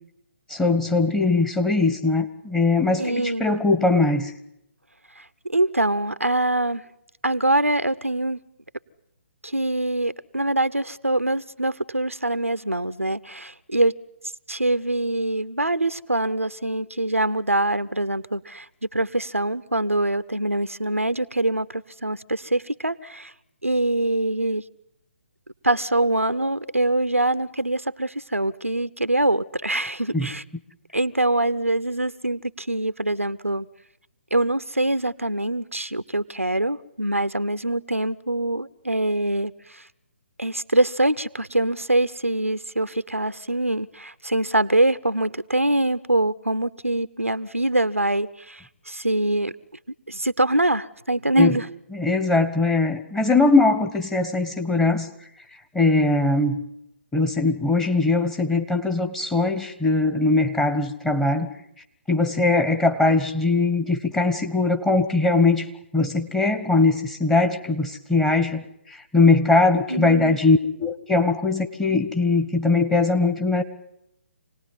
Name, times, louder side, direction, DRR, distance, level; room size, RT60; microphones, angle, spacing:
voice 1, 0.5-4.3 30.1-30.3 51.4-51.6 51.9-55.1 55.7-56.6 57.1-61.5 62.1-65.7 65.9-68.6 69.1-73.6, left 3 dB, 5° left, 7 dB, 1.3 m, -21 dB
voice 2, 3.0-3.5 5.2-5.3 5.5-6.8 7.2-8.4 9.4-14.0 14.5-18.7 18.9-23.3 23.6-24.6 25.6-30.4 30.9-33.7 34.3-39.8 40.4-49.5 50.1-51.7 69.9-70.4, right 1 dB, 90° right, 14 dB, 1.0 m, -24 dB
27.5 x 19.0 x 9.5 m, 0.80 s
figure-of-eight pair, 140°, 7 cm